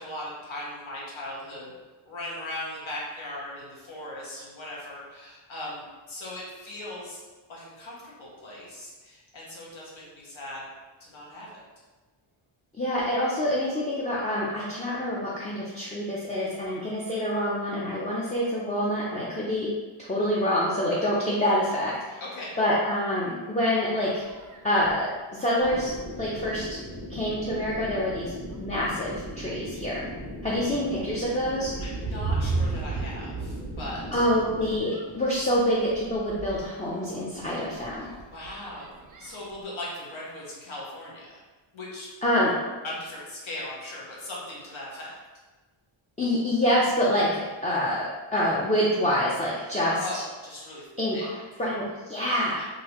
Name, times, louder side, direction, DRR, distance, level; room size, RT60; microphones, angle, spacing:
voice 1, 0.0-1.7 2.0-7.2 7.5-10.7 11.0-11.6 22.2-22.5 31.8-34.2 38.0-41.4 41.7-42.1 42.4-45.2 49.7-50.9 51.1-51.3 52.5-52.7, left 1 dB, 70° left, -5 dB, 1.3 m, -39 dB
voice 2, 12.7-19.7 20.0-22.2 22.6-24.2 24.6-25.9 26.2-26.6 27.1-30.1 30.4-31.7 34.1-38.1 42.2-42.5 46.2-50.2 51.0-51.2 51.6-52.6, equal, 15° left, -6 dB, 0.4 m, -26 dB
sound 1, 24.1-25.1 25.9-26.0 26.5-26.7 27.0-27.6 28.3-28.6 29.0-39.6, right 3 dB, 45° right, 0.4 m, -36 dB
sound 2, 25.6-34.8, equal, 40° left, 1.3 m, -39 dB
3.8 x 2.6 x 2.9 m, 1.3 s
wide cardioid pair, 120°, 49 cm